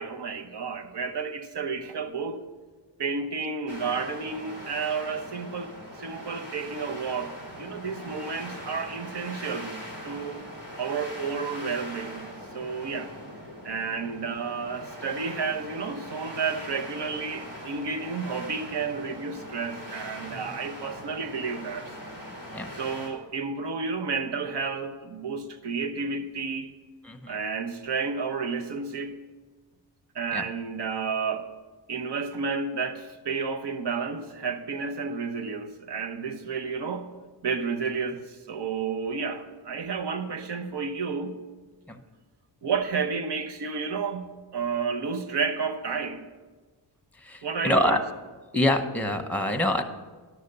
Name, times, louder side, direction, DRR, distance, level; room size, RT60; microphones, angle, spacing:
voice 1, 0.0-2.5 3.0-5.7 6.0-9.8 10.0-10.4 10.8-12.3 12.5-13.1 13.6-21.9 22.7-26.7 27.3-29.2 30.1-31.5 31.9-37.1 37.4-41.4 42.6-46.3 47.4-48.0, right 5 dB, 65° right, 1.0 m, -31 dB
sound 1, 3.7-23.1, equal, 85° right, 3.2 m, -41 dB
voice 2, 27.0-27.4 30.3-30.4 41.9-42.0 47.2-48.0 48.5-49.8, left 1 dB, 5° left, 0.9 m, -25 dB
12.0 x 6.5 x 6.7 m
wide cardioid pair, 115°, 44 cm